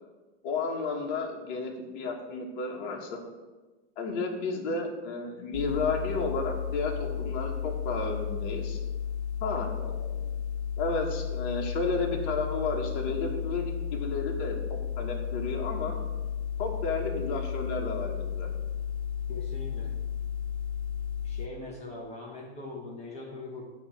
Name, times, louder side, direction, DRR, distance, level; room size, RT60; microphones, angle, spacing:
voice 1, 0.4-3.3 4.0-8.8 9.4-10.3 10.8-13.6 13.9-16.0 16.6-18.5, left 3 dB, 55° left, 0 dB, 1.4 m, -32 dB
sound 1, 5.5-21.5, left 8 dB, 80° left, 0.6 m, -33 dB
voice 2, 19.3-19.9 21.2-23.6, left 3 dB, 20° left, -3 dB, 1.1 m, -41 dB
8.2 x 3.1 x 5.6 m, 1.2 s
hypercardioid pair, 120°, 33 cm